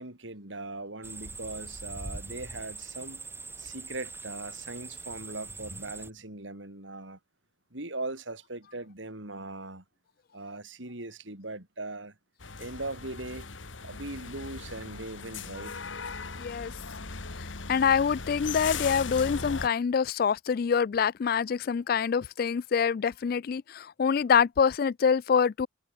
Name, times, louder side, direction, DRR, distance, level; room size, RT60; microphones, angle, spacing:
voice 1, 0.0-3.2 3.6-7.2 7.7-9.8 10.3-12.1 12.6-13.5 13.8-15.8, right 2 dB, 80° right, 4.7 m, -39 dB
sound 1, 1.0-6.1, right 3 dB, 10° right, 2.0 m, -42 dB
sound 2, 12.4-19.7, left 4 dB, 85° left, 1.9 m, -38 dB
voice 2, 16.4-16.7 17.7-25.7, left 6 dB, 50° left, 0.3 m, -25 dB
head